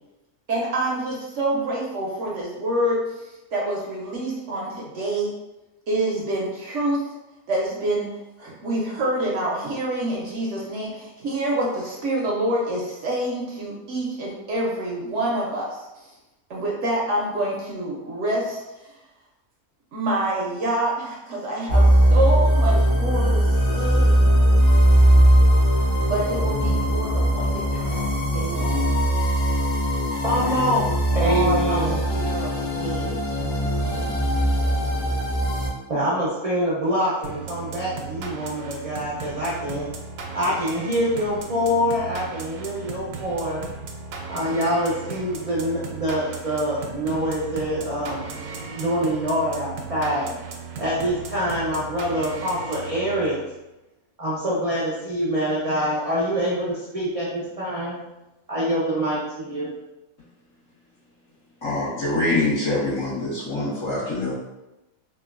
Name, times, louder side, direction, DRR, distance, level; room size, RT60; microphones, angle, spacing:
voice 1, 0.5-5.3 5.9-7.0 7.5-8.1 8.4-16.1 16.5-18.6 19.9-24.2 26.1-28.9 30.4-30.8 31.2-34.1, right 1 dB, 65° right, -3 dB, 0.8 m, -27 dB
sound 1, 21.7-35.7, equal, 85° left, 1.3 m, -20 dB
voice 2, 30.2-30.8 31.1-32.0 35.9-39.9 40.3-43.6 44.3-48.3 48.7-50.3 50.8-53.4 54.2-58.0 58.5-59.7, equal, 50° right, -7 dB, 0.4 m, -25 dB
sound 2, 37.2-53.5, right 4 dB, 90° right, 1.1 m, -36 dB
voice 3, 61.6-64.3, left 2 dB, 65° left, -10 dB, 1.8 m, -24 dB
3.7 x 2.2 x 2.4 m, 0.98 s
omnidirectional pair, 1.6 m